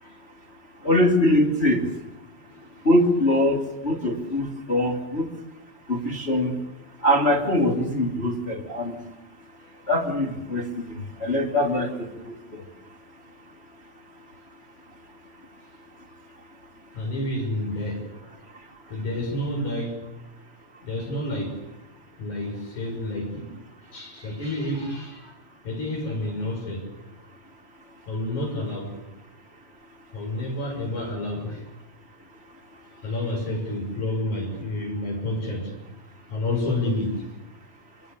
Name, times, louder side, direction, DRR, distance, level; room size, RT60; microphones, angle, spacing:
voice 1, 0.8-1.9 2.8-5.3 5.9-6.6 7.0-9.0 9.9-10.6 11.2-12.6, left 1 dB, 20° left, -1 dB, 2.7 m, -22 dB
voice 2, 16.9-18.1 18.9-20.0 20.9-21.6 22.2-23.5 23.9-25.3 25.6-26.9 28.1-29.0 30.1-31.6 33.0-35.8 36.3-37.3, left 1 dB, 55° left, 3 dB, 7.3 m, -29 dB
27.0 x 24.0 x 6.8 m, 0.96 s
omnidirectional pair, 4.3 m